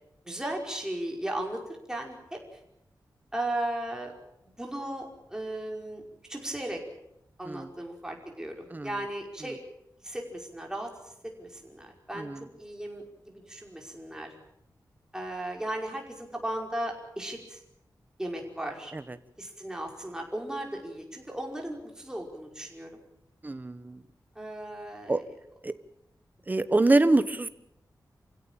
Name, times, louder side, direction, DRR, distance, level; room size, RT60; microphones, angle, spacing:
voice 1, 0.2-1.6 1.9-2.6 3.3-4.1 4.6-6.0 6.3-6.8 7.4-9.6 10.0-14.3 15.1-17.6 18.2-18.9 19.4-23.0 24.4-25.2, right 1 dB, 10° right, 1 dB, 5.4 m, -36 dB
voice 2, 12.1-12.5 18.9-19.0 23.4-24.0 25.1-25.2 25.6-25.7 26.5-27.5, right 2 dB, 25° right, 12 dB, 1.2 m, -25 dB
28.5 x 16.5 x 8.9 m, 0.81 s
wide cardioid pair, 135°, 7 cm